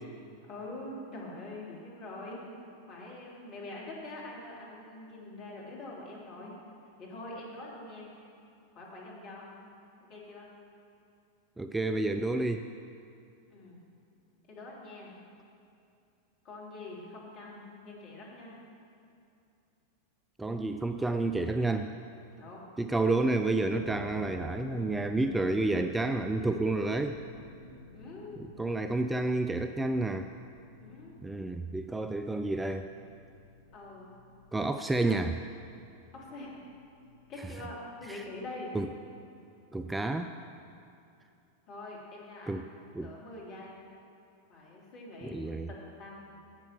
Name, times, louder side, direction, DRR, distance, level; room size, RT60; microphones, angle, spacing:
voice 1, 0.4-2.4 2.9-6.6 7.0-8.1 8.7-9.5 10.1-10.5 13.5-13.8 14.5-15.1 16.4-18.6 22.3-22.6 27.9-28.4 30.8-31.1 33.7-34.1 36.1-36.5 37.3-38.7 41.7-43.8 44.5-45.4 45.7-46.3, left 2 dB, 40° left, -4 dB, 3.3 m, -44 dB
voice 2, 11.6-12.7 20.4-21.9 22.8-27.2 28.6-30.3 31.2-32.9 34.5-35.4 38.1-38.2 38.7-38.9 39.7-40.3 42.5-42.6 42.9-43.1 45.2-45.7, right 2 dB, 10° right, 7 dB, 0.4 m, -30 dB
sound 1, 23.7-38.5, left 2 dB, 75° left, 0.9 m, -51 dB
11.5 x 8.6 x 6.2 m, 2.6 s
figure-of-eight pair, 90°, 0 cm